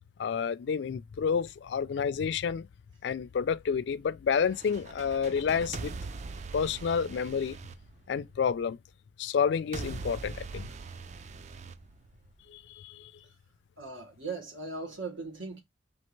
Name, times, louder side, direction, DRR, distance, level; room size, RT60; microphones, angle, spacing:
voice 1, 0.2-2.7 3.0-5.9 6.5-7.6 8.1-8.8 9.2-10.7 12.5-13.1, left 6 dB, 65° left, 0.3 m, -29 dB
sound 1, 4.5-8.6 9.7-12.6, right 4 dB, 35° right, 0.3 m, -42 dB
voice 2, 13.8-15.6, right 3 dB, 85° right, 1.4 m, -38 dB
4.4 x 2.8 x 3.0 m
head